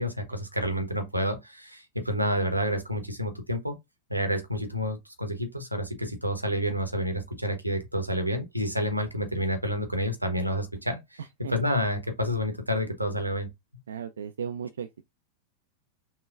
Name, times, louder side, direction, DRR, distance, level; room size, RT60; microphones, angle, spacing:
voice 1, 0.0-3.8 4.1-11.2 11.5-13.5, equal, 85° right, 0.7 m, -29 dB
voice 2, 11.2-11.5 13.9-15.0, right 7 dB, 65° right, 0.3 m, -36 dB
5.5 x 2.2 x 2.3 m
figure-of-eight pair, 90°, 0 cm